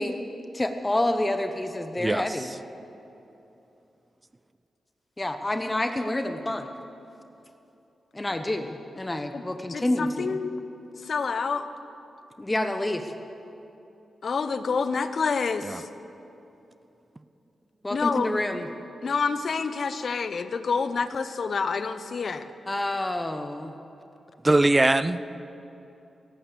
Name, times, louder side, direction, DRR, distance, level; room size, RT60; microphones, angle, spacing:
voice 1, 0.0-2.5 5.2-6.7 8.1-10.4 12.4-13.1 17.8-18.7 22.7-23.7, left 1 dB, 25° left, 7 dB, 1.0 m, -28 dB
voice 2, 9.7-10.5 11.0-11.7 14.2-15.9 17.9-18.3 19.0-22.5, left 5 dB, 65° left, 11 dB, 0.7 m, -28 dB
voice 3, 24.4-25.2, right 2 dB, 25° right, 15 dB, 0.5 m, -21 dB
17.5 x 8.9 x 6.8 m, 2.9 s
supercardioid pair, 50°, 0 cm